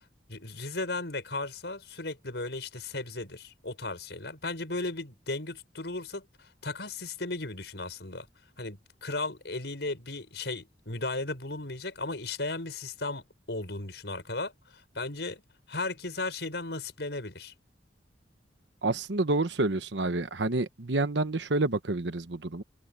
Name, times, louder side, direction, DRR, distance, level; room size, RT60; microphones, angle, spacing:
voice 1, 0.3-8.3 8.6-13.2 13.5-14.5 14.9-15.4 15.7-17.5, left 2 dB, 70° left, 5.8 m, -35 dB
voice 2, 18.8-22.6, right 2 dB, 80° right, 1.1 m, -28 dB
open air
head